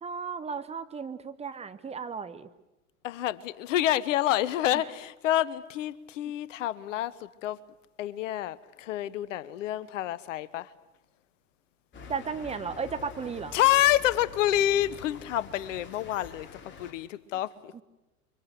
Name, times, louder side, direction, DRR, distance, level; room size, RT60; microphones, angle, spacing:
voice 1, 0.0-2.5 4.7-4.8 12.1-13.6, right 5 dB, 15° right, 1.0 m, -35 dB
voice 2, 3.0-7.6 8.0-10.7 13.5-17.7, left 13 dB, 55° left, 1.1 m, -28 dB
sound 1, 11.9-16.9, left 4 dB, 25° left, 3.4 m, -46 dB
29.0 x 24.0 x 6.7 m
figure-of-eight pair, 90°, 44 cm